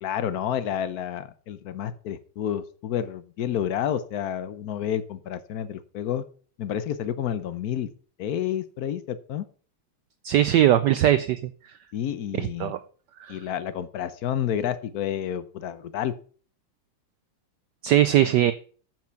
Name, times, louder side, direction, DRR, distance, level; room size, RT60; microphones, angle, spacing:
voice 1, 0.0-6.2 6.6-7.9 8.2-9.4 11.9-12.7 13.3-16.1, left 10 dB, 70° left, 13 dB, 0.9 m, -30 dB
voice 2, 10.2-11.5 12.4-12.8 13.2-13.4 17.8-18.5, right 12 dB, 90° right, 12 dB, 0.9 m, -20 dB
7.6 x 7.5 x 5.7 m, 0.41 s
omnidirectional pair, 2.4 m